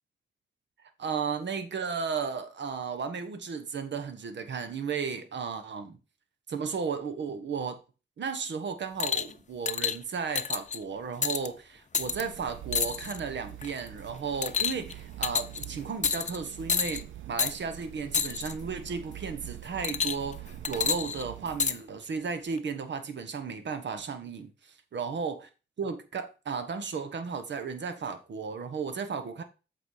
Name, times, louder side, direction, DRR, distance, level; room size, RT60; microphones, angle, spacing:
voice 1, 0.8-6.0 6.5-7.8 8.2-25.5 25.8-29.4, right 5 dB, 70° right, 1.4 m, -34 dB
sound 1, 9.0-9.3 9.7-10.0 10.3-10.8 11.2-11.5 11.9-12.2 12.7-13.2 13.6-13.9 14.4-14.9 15.2-15.6 16.0-16.4 16.7-17.0 17.4-17.5 18.1-18.5 19.8-20.3 20.6-21.8 22.6-22.7, left 6 dB, 40° left, 0.7 m, -29 dB
sound 2, 11.9-21.8, right 12 dB, 90° right, 0.6 m, -45 dB
8.0 x 4.7 x 4.8 m
cardioid pair, 70°, 19 cm